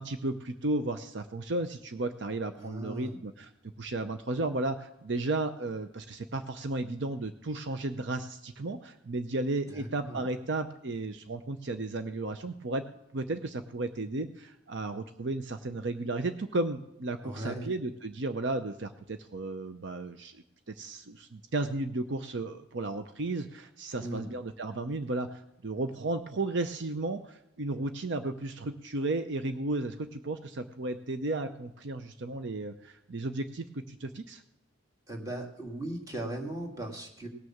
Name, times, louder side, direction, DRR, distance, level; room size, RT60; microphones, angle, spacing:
voice 1, 0.0-3.5 3.8-12.9 13.1-20.3 20.7-34.4, right 2 dB, 60° right, 9 dB, 0.7 m, -34 dB
voice 2, 2.6-3.2 9.7-10.2 17.2-17.7 24.0-24.3 35.1-37.3, right 1 dB, 15° right, 2 dB, 2.0 m, -38 dB
18.5 x 6.4 x 7.2 m, 0.83 s
head